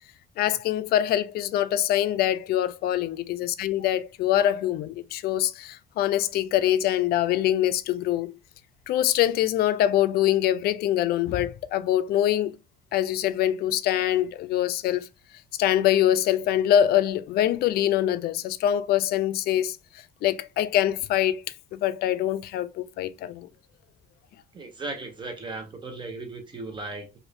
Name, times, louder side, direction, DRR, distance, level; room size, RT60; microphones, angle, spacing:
voice 1, 0.4-8.3 8.9-12.5 12.9-15.1 15.6-19.8 20.2-21.4 21.7-23.5, left 11 dB, 65° left, 0.4 m, -24 dB
voice 2, 24.5-27.2, right 3 dB, 30° right, 0.9 m, -36 dB
2.6 x 2.6 x 3.3 m
cardioid pair, 110°, 17 cm